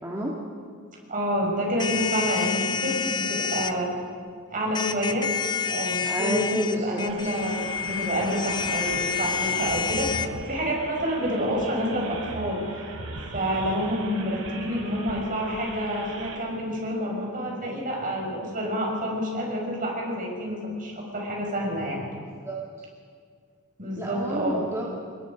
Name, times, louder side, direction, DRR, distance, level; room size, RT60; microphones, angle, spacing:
voice 1, 0.0-0.4 6.0-7.3 22.4-22.6 24.0-24.9, equal, 15° right, -4 dB, 2.1 m, -30 dB
voice 2, 1.1-3.9 4.5-5.3 5.7-12.7 13.3-22.0 23.8-24.6, equal, 40° right, -1 dB, 5.9 m, -28 dB
sound 1, 1.8-3.7 4.7-10.3, left 7 dB, 20° left, 0.8 m, -29 dB
sound 2, 7.1-16.4, right 2 dB, 80° right, 3.5 m, -39 dB
28.0 x 21.5 x 5.2 m, 2.1 s
head